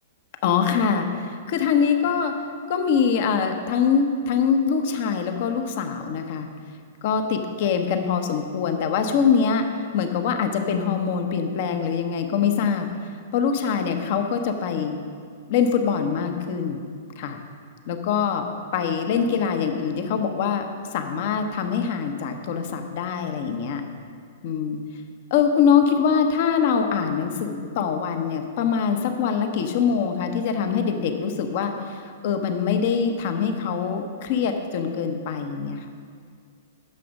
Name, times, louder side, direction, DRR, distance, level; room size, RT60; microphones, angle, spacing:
voice 1, 0.4-2.3 2.7-6.5 7.0-9.7 9.9-12.9 13.3-15.0 15.5-16.8 17.2-17.4 17.9-18.5 18.7-20.7 20.9-23.8 24.4-24.8 25.3-35.9, left 6 dB, 50° left, 6 dB, 1.0 m, -23 dB
10.0 x 6.8 x 5.3 m, 2.2 s
figure-of-eight pair, 110°, 0 cm